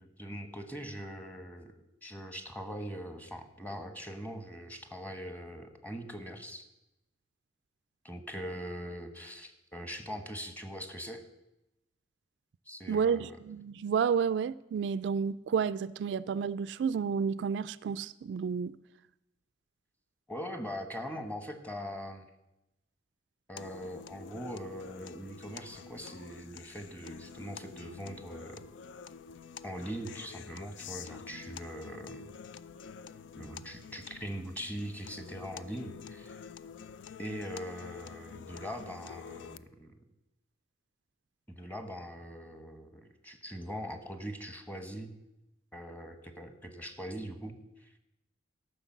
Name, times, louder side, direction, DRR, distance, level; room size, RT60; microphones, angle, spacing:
voice 1, 0.0-6.7 8.0-11.2 12.7-13.4 20.3-22.2 23.5-28.6 29.6-32.3 33.4-36.4 37.2-39.9 41.5-45.1 45.7-47.5 47.8-47.9, equal, 10° left, 1.1 m, -42 dB
voice 2, 12.9-18.7, right 6 dB, 70° right, 0.3 m, -31 dB
sound 1, 23.6-39.6, left 6 dB, 85° left, 0.4 m, -48 dB
13.0 x 5.9 x 7.2 m
head